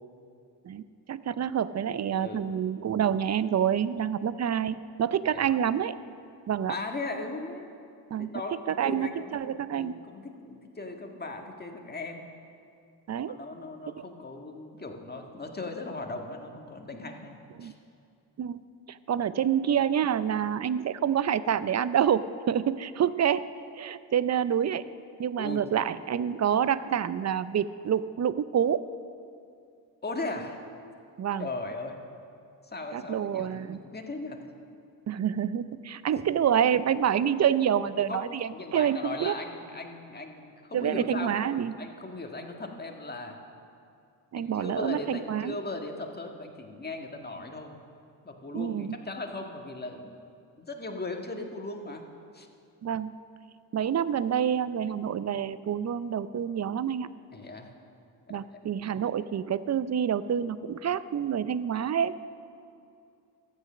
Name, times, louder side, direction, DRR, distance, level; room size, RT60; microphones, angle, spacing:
voice 1, 1.1-6.0 6.5-6.8 8.1-8.4 8.7-9.9 13.1-13.4 13.9-14.0 17.6-17.7 18.4-18.6 18.9-23.4 23.8-24.8 25.2-28.8 31.2-31.5 32.9-33.8 35.1-39.3 40.7-41.8 44.3-45.6 48.5-49.0 52.8-53.1 53.7-57.1 58.3-62.2, right 9 dB, 35° right, 15 dB, 0.5 m, -27 dB
voice 2, 2.2-2.5 5.3-5.4 6.7-7.7 8.2-9.3 9.7-12.2 13.3-17.3 17.6-17.7 25.4-25.6 30.0-30.6 31.4-32.0 32.6-34.4 38.1-38.3 38.5-41.4 41.8-43.4 44.4-47.7 48.2-50.2 50.6-52.1 52.3-52.5 57.3-57.7 58.3-58.4, left 2 dB, 20° left, 3 dB, 1.8 m, -38 dB
13.5 x 8.1 x 6.4 m, 2.5 s
hypercardioid pair, 55°, 47 cm